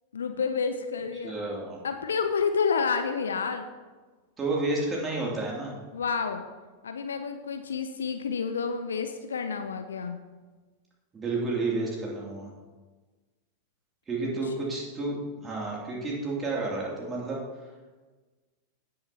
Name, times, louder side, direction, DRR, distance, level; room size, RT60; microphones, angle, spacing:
voice 1, 0.1-1.3 1.8-3.6 5.9-6.4 6.8-10.2, left 5 dB, 70° left, 7 dB, 0.6 m, -29 dB
voice 2, 1.2-1.8 4.4-5.7 11.1-12.5 14.1-15.2 15.4-17.4, right 2 dB, 20° right, -3 dB, 2.7 m, -30 dB
17.0 x 6.6 x 2.9 m, 1.3 s
figure-of-eight pair, 90°, 0 cm